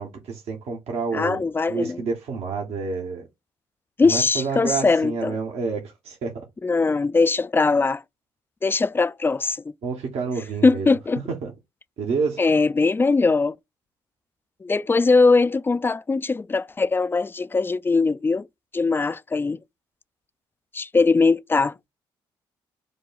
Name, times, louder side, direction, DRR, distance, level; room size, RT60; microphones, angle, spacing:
voice 1, 0.0-1.4 1.7-3.2 4.0-6.3 9.8-10.9 11.3-11.5 12.0-12.4, right 5 dB, 65° right, 1.0 m, -28 dB
voice 2, 1.1-2.0 4.0-5.4 6.6-8.0 8.6-9.6 10.6-11.2 12.4-13.5 14.6-18.5 18.7-19.6 20.7-21.7, left 4 dB, 20° left, 0.3 m, -20 dB
5.0 x 2.3 x 3.9 m
hypercardioid pair, 45°, 12 cm